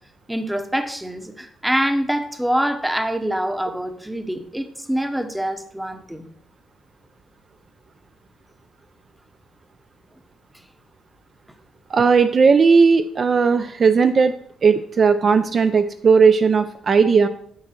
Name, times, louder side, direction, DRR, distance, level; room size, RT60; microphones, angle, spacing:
voice 1, 0.3-6.3, equal, 5° right, 8 dB, 0.8 m, -25 dB
voice 2, 11.9-14.3 14.6-17.3, right 5 dB, 45° right, 9 dB, 0.3 m, -16 dB
9.6 x 3.8 x 4.3 m, 0.64 s
cardioid pair, 90°, 0 cm